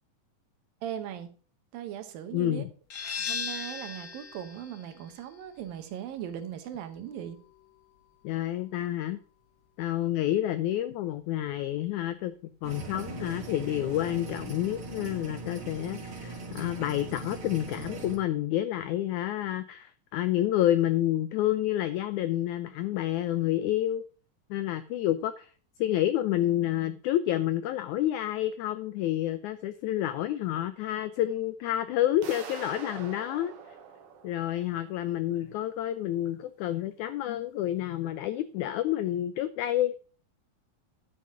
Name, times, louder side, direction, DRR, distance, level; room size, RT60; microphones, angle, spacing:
voice 1, 0.8-1.3 1.7-2.7 3.0-7.4, right 10 dB, 80° right, 9 dB, 2.8 m, -39 dB
voice 2, 2.3-2.7 8.2-9.2 9.8-24.0 24.5-25.5 25.8-33.5 34.2-39.9, left 13 dB, 85° left, 13 dB, 1.7 m, -29 dB
sound 1, 2.9-8.3, left 6 dB, 50° left, 2.9 m, -39 dB
sound 2, 12.6-18.2, right 3 dB, 40° right, 3.0 m, -40 dB
sound 3, 32.2-35.1, right 6 dB, 60° right, 1.7 m, -44 dB
11.0 x 6.6 x 4.9 m, 0.39 s
omnidirectional pair, 4.1 m